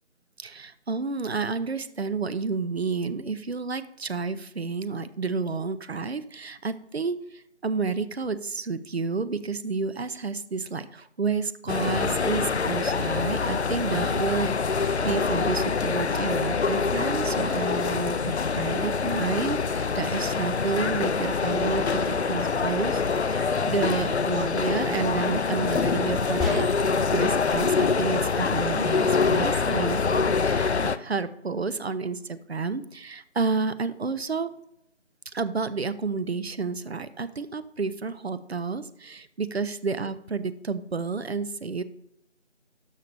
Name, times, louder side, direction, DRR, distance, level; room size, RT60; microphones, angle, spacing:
voice 1, 0.4-34.5 35.3-41.8, right 4 dB, 65° right, 13 dB, 0.6 m, -30 dB
sound 1, 11.7-31.0, left 5 dB, 70° left, 0.6 m, -25 dB
sound 2, 26.4-27.1, left 3 dB, ahead, 0.6 m, -31 dB
13.0 x 5.7 x 3.4 m, 0.78 s
figure-of-eight pair, 170°, 35 cm